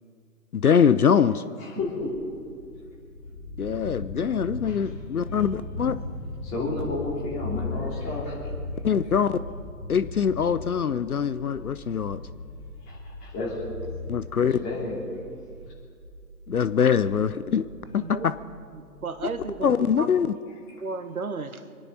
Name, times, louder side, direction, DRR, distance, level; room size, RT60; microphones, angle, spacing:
voice 1, 0.5-1.4 3.6-5.9 8.8-9.4 9.9-12.2 14.1-14.6 16.5-17.6 17.9-18.3 19.6-20.3, left 7 dB, 65° left, 14 dB, 0.7 m, -23 dB
voice 2, 1.6-2.1 4.7-4.8 6.4-8.4 12.9-14.0 14.4-15.0, left 2 dB, 15° left, -4 dB, 3.0 m, -32 dB
sound 1, 1.9-19.6, left 2 dB, 10° right, 2.7 m, -38 dB
voice 3, 18.7-20.1 20.8-21.6, right 4 dB, 60° right, 9 dB, 1.3 m, -34 dB
25.5 x 10.0 x 5.5 m, 2.2 s
figure-of-eight pair, 145°, 49 cm